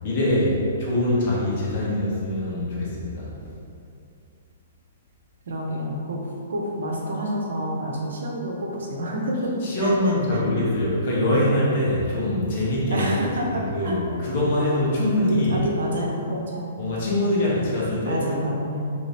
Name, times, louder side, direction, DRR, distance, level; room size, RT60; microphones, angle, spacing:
voice 1, 0.0-3.5 9.6-13.2 13.7-15.6 16.8-18.2, left 1 dB, 50° left, -6 dB, 1.1 m, -23 dB
voice 2, 5.5-9.9 10.3-10.4 12.9-14.0 15.5-16.7 18.0-18.9, equal, 70° right, -1 dB, 0.6 m, -28 dB
3.2 x 2.7 x 3.2 m, 2.5 s
hypercardioid pair, 125°, 0 cm